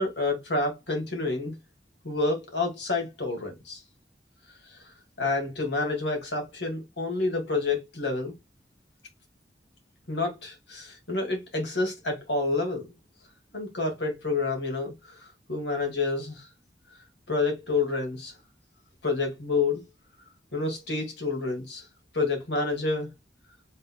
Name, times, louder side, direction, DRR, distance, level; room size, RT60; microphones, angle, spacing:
voice 1, 0.0-1.5 2.0-3.8 5.2-8.4 10.1-12.8 13.5-16.5 17.3-18.3 19.0-19.8 20.5-21.8 22.1-23.1, left 3 dB, 80° left, 2.4 m, -28 dB
5.4 x 3.9 x 2.3 m
head